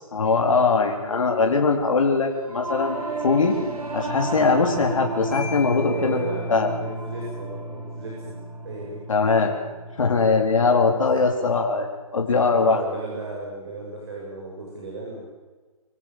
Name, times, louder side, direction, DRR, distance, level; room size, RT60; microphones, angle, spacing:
voice 1, 0.1-3.5 3.9-6.2 6.5-6.7 9.1-9.5 10.0-12.8, left 4 dB, 60° left, 2 dB, 4.0 m, -21 dB
Singing / Musical instrument, 2.4-12.0, right 2 dB, 80° right, 6.5 m, -33 dB
Marimba xylophone, 5.3-7.1, left 6 dB, ahead, 6.9 m, -40 dB
voice 2, 5.9-8.4 8.6-9.0 10.8-11.2 12.5-15.3, right 2 dB, 45° right, -3 dB, 7.2 m, -35 dB
26.0 x 16.5 x 7.6 m, 1.3 s
hypercardioid pair, 155°, 19 cm